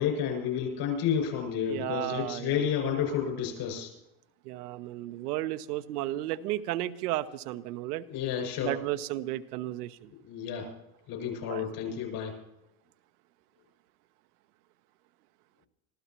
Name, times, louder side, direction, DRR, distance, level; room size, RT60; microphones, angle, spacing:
voice 1, 0.0-3.9 8.1-8.7 10.2-10.7 11.1-12.3, left 8 dB, 55° left, 2 dB, 6.7 m, -30 dB
voice 2, 1.7-2.7 4.4-8.1 8.6-10.1 11.5-11.8, right 14 dB, 85° right, 10 dB, 0.9 m, -34 dB
25.5 x 15.0 x 3.0 m, 0.90 s
supercardioid pair, 120°, 45 cm